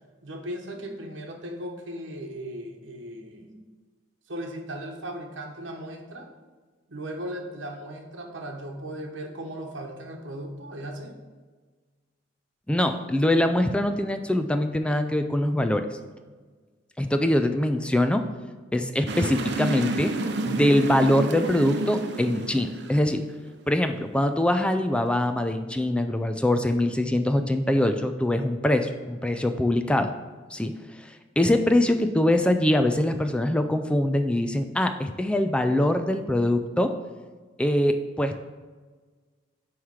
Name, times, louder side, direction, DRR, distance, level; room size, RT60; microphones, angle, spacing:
voice 1, 0.2-3.5 4.3-6.3 6.9-11.2, right 1 dB, 90° right, 3 dB, 1.0 m, -37 dB
voice 2, 12.7-15.9 17.0-18.2 18.7-20.1 20.5-23.2 23.7-30.1 30.5-30.7 31.0-31.1 31.4-36.9 37.6-38.4, left 1 dB, 5° left, 7 dB, 0.3 m, -23 dB
sound 1, 19.1-23.5, right 3 dB, 65° right, 0.5 m, -30 dB
9.2 x 3.2 x 4.8 m, 1.4 s
head